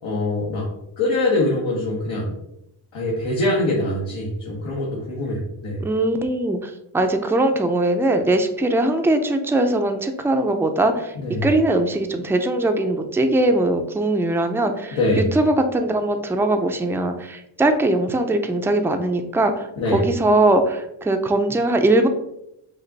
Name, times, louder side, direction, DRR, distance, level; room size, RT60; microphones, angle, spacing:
voice 1, 0.0-0.7 1.0-2.3 2.9-5.8 11.1-11.5 14.9-15.3 19.8-20.0, left 2 dB, 75° left, -4 dB, 1.2 m, -23 dB
voice 2, 5.8-11.1 11.4-22.1, right 2 dB, 5° right, 5 dB, 0.4 m, -21 dB
5.2 x 2.5 x 4.0 m, 0.82 s
cardioid pair, 70°, 47 cm